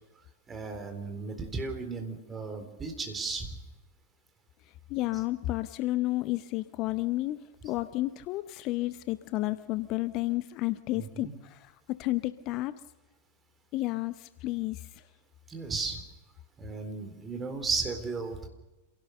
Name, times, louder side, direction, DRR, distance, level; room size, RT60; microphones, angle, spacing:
voice 1, 0.5-3.5 10.9-11.3 15.5-16.0 16.6-18.5, right 4 dB, 20° right, 5 dB, 4.0 m, -35 dB
voice 2, 4.9-11.7 12.0-12.7 13.7-14.9, left 17 dB, 40° left, 14 dB, 0.7 m, -31 dB
27.5 x 17.5 x 6.7 m, 1.1 s
figure-of-eight pair, 90°, 0 cm